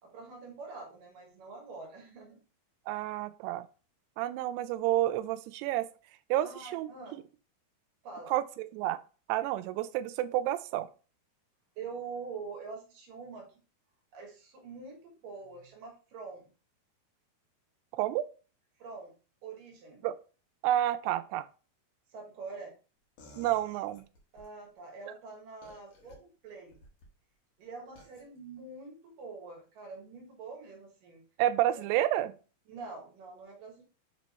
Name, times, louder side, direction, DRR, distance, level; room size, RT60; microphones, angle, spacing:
voice 1, 0.0-2.4 6.4-7.2 8.0-8.3 11.8-13.5 14.1-16.5 18.8-19.1 19.4-20.0 22.1-22.7 24.3-26.8 27.6-31.2 31.8-31.9 32.7-33.8, right 4 dB, 65° right, 2.6 m, -45 dB
voice 2, 2.9-3.7 4.2-5.9 6.3-7.2 8.3-9.0 9.3-10.9 17.9-18.3 20.0-20.2 20.6-21.5 23.4-24.1 31.4-32.4, right 13 dB, 85° right, 2.6 m, -30 dB
sound 1, 23.2-24.5 25.6-26.2 26.7-27.1 28.0-28.2, left 1 dB, 60° left, 2.9 m, -55 dB
7.5 x 3.3 x 4.1 m
omnidirectional pair, 4.7 m